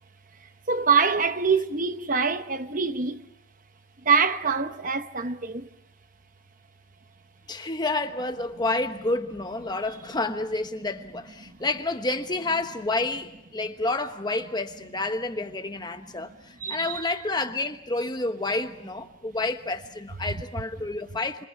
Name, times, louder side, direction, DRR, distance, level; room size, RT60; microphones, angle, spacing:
voice 1, 0.7-3.2 4.0-5.7 16.6-17.0, right 5 dB, 40° right, 0.9 m, -24 dB
voice 2, 7.5-21.5, left 2 dB, 20° left, 1.1 m, -29 dB
30.0 x 26.5 x 5.9 m
head